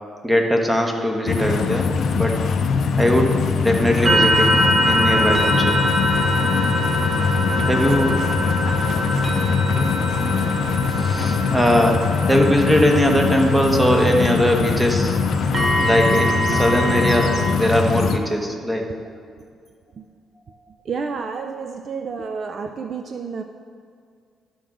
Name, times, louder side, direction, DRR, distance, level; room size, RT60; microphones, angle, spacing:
voice 1, 0.2-1.9 2.1-2.4 3.0-4.5 4.8-5.8 7.7-8.2 9.8-9.9 10.9-12.0 12.3-15.2 15.8-18.8, equal, 10° right, 2 dB, 1.2 m, -20 dB
sound 1, 1.3-18.2, left 5 dB, 60° left, 0.5 m, -22 dB
sound 2, 4.0-17.5, equal, 30° right, 1.2 m, -24 dB
voice 2, 7.5-8.3 16.1-16.3 18.8-19.1 19.9-20.1 20.8-23.4, right 5 dB, 50° right, 6 dB, 0.4 m, -32 dB
12.0 x 6.1 x 3.8 m, 2.2 s
cardioid pair, 90°, 0 cm